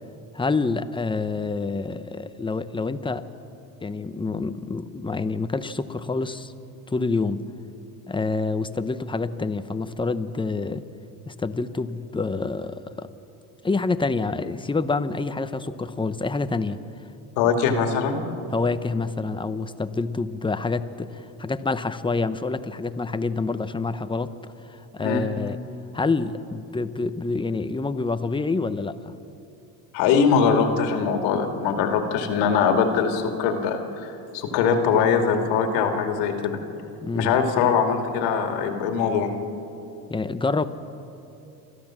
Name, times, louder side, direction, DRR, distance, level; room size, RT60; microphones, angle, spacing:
voice 1, 0.3-3.2 3.8-6.5 6.9-7.4 8.1-10.8 11.3-13.1 13.6-16.8 18.5-24.3 24.7-25.6 25.9-29.1 37.0-37.3 40.1-40.7, left 3 dB, 10° left, 11 dB, 0.9 m, -27 dB
voice 2, 17.4-18.2 25.0-25.2 29.9-36.6 37.1-39.3, left 6 dB, 80° left, 5 dB, 2.4 m, -22 dB
29.0 x 13.0 x 7.5 m, 2.8 s
supercardioid pair, 100°, 42 cm